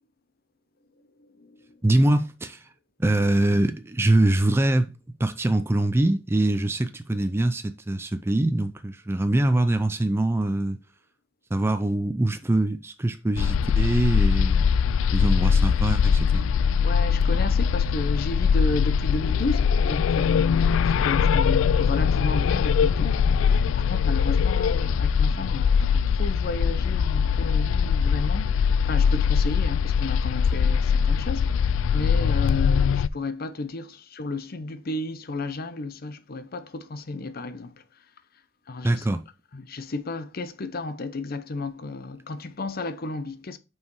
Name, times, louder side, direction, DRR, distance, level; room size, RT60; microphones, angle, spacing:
voice 1, 1.2-1.8 16.8-37.8 38.7-39.1 39.5-43.6, left 2 dB, 50° left, 0.7 m, -33 dB
voice 2, 1.8-2.6 3.0-4.9 5.2-10.8 11.5-14.7 15.1-16.5 38.8-39.2, right 1 dB, 15° right, 0.4 m, -23 dB
sound 1, 13.4-33.1, left 6 dB, 80° left, 0.3 m, -22 dB
5.7 x 4.7 x 4.6 m
head